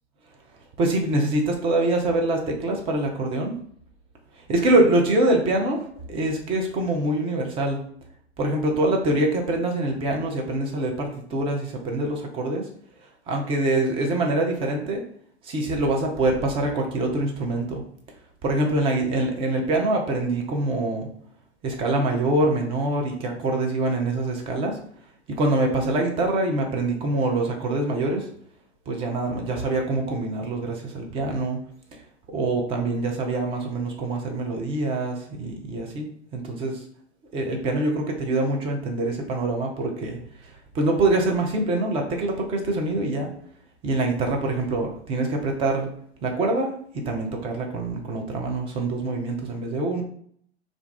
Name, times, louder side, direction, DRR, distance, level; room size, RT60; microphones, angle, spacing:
voice 1, 0.8-3.6 4.5-7.8 8.4-12.7 13.3-15.0 15.4-17.8 18.4-21.1 21.6-24.8 25.3-28.3 28.9-31.6 32.3-36.1 36.3-36.8 37.3-43.3 43.8-45.9 46.2-50.0, right 2 dB, 15° right, 2 dB, 0.4 m, -24 dB
2.4 x 2.3 x 3.4 m, 0.62 s
figure-of-eight pair, 95°, 34 cm